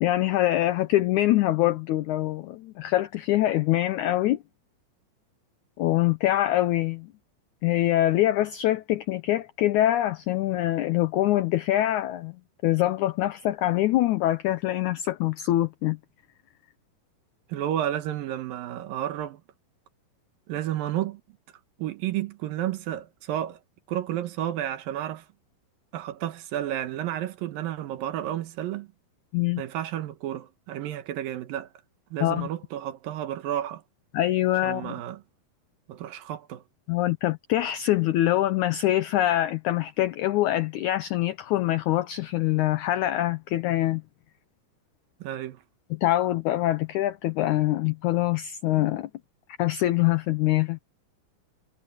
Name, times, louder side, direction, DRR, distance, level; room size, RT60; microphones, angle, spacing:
voice 1, 0.0-4.4 5.8-7.1 7.6-12.4 12.6-16.0 29.3-29.6 32.2-32.5 34.1-34.9 36.9-44.0 45.9-49.1 49.6-50.8, left 14 dB, 90° left, 1.7 m, -24 dB
voice 2, 17.5-19.4 20.5-21.2 21.8-23.6 23.9-25.3 25.9-28.9 29.6-31.7 32.1-33.8 34.6-35.2 35.9-36.6 45.2-45.6, right 12 dB, 75° right, 2.8 m, -31 dB
omnidirectional pair, 4.3 m